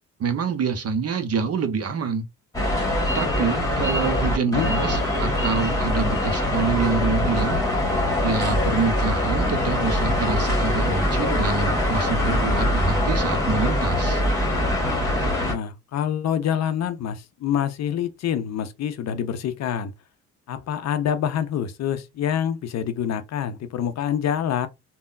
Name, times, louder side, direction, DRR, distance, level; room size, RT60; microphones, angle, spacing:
voice 1, 0.2-2.3 3.1-7.6 8.2-14.2, right 5 dB, 40° right, 0.7 m, -26 dB
sound 1, 2.5-15.5, left 1 dB, 10° left, 1.5 m, -23 dB
voice 2, 12.2-12.7 15.4-19.9 20.5-24.7, left 9 dB, 45° left, 0.5 m, -26 dB
3.5 x 2.2 x 2.4 m
hypercardioid pair, 45°, 38 cm